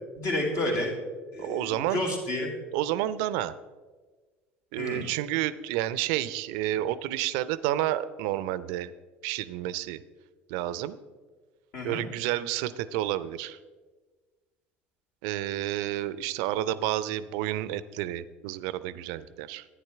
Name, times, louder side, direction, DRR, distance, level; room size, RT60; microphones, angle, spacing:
voice 1, 0.2-0.9 1.3-2.5 4.8-5.0 11.7-12.0, left 1 dB, 60° left, -2 dB, 2.6 m, -30 dB
voice 2, 1.4-2.0 2.7-3.5 4.7-8.9 9.2-10.0 10.5-11.0 11.8-13.6 15.2-19.6, right 13 dB, 65° right, 16 dB, 0.4 m, -30 dB
10.5 x 9.4 x 3.5 m, 1.4 s
hypercardioid pair, 65°, 6 cm